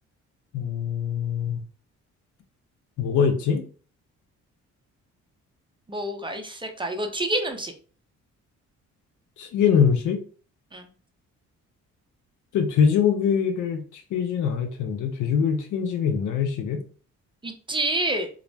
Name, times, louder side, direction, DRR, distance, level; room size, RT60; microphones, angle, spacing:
voice 1, 0.5-1.6 3.0-3.6 9.4-10.2 12.5-16.8, left 7 dB, 80° left, 6 dB, 0.6 m, -23 dB
voice 2, 5.9-7.7 10.7-10.9 17.4-18.3, right 1 dB, 15° right, 4 dB, 0.5 m, -28 dB
2.4 x 2.0 x 3.3 m, 0.40 s
cardioid pair, 90°, 30 cm